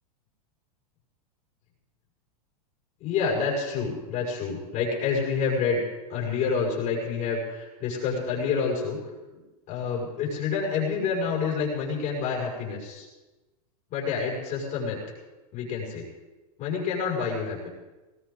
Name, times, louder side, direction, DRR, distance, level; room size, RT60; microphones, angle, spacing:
voice 1, 3.0-5.8 6.1-9.0 9.7-13.0 13.9-15.0 15.5-16.0 16.6-17.7, left 5 dB, 40° left, -3 dB, 6.4 m, -28 dB
20.5 x 16.0 x 4.0 m, 1.1 s
supercardioid pair, 135°, 20 cm